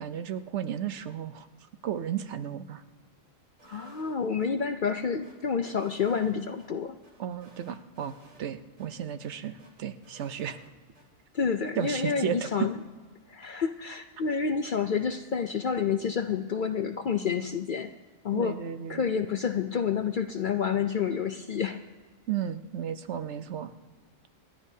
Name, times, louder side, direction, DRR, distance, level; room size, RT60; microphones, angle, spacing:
voice 1, 0.0-1.5 1.8-2.8 3.7-3.9 7.2-10.6 11.8-12.7 18.3-19.1 22.3-23.7, right 9 dB, 65° right, 10 dB, 1.0 m, -34 dB
voice 2, 3.6-7.0 11.3-12.8 13.3-17.9 18.2-18.6 18.9-21.8, left 6 dB, 55° left, 8 dB, 0.6 m, -29 dB
sound 1, 3.6-4.5 4.8-6.7 7.0-8.5 8.8-8.9 9.2-11.0 11.4-12.2, right 1 dB, 85° right, 3.0 m, -57 dB
27.5 x 12.0 x 2.8 m, 1.4 s
omnidirectional pair, 1.3 m